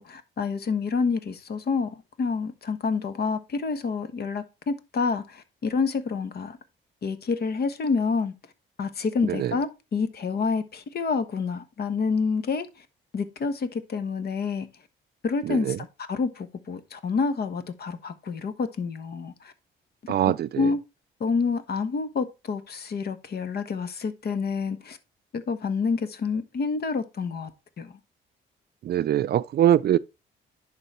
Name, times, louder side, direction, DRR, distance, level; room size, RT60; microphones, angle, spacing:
voice 1, 0.0-6.6 7.0-8.3 8.8-12.8 13.1-14.7 15.2-19.5 20.0-20.8 21.2-25.0 25.3-27.5 27.8-27.9, left 5 dB, 55° left, 1.3 m, -28 dB
voice 2, 15.5-15.8 20.1-20.7 28.8-30.0, right 11 dB, 55° right, 0.4 m, -23 dB
10.5 x 4.0 x 4.3 m
cardioid pair, 90°, 20 cm